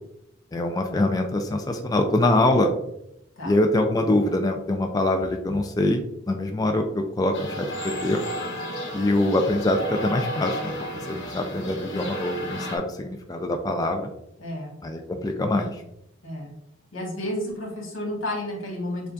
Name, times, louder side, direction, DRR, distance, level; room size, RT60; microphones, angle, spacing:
voice 1, 0.5-2.7 3.4-6.0 6.3-7.7 8.0-8.2 8.9-10.7 11.1-14.1 14.8-15.8, left 1 dB, 20° left, 4 dB, 0.3 m, -24 dB
sound 1, 7.3-12.8, equal, 65° left, 1.0 m, -33 dB
voice 2, 14.4-14.7 16.2-16.5 16.9-19.1, left 1 dB, 85° left, -1 dB, 1.6 m, -31 dB
6.9 x 2.3 x 2.5 m, 0.81 s
head